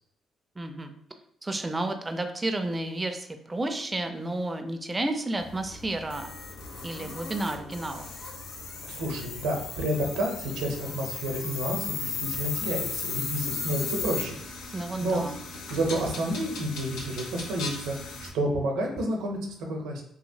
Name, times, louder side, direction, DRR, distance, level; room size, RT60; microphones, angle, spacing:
voice 1, 0.6-0.9 1.4-6.3 6.8-8.1 14.7-15.4, right 2 dB, 20° right, 6 dB, 0.4 m, -31 dB
sound 1, 5.4-18.3, left 4 dB, 85° left, 0.6 m, -36 dB
voice 2, 8.8-14.4 15.0-15.2 15.7-19.4 19.7-20.0, right 1 dB, 90° right, 1 dB, 0.6 m, -30 dB
2.9 x 2.8 x 2.7 m, 0.75 s
cardioid pair, 80°, 0 cm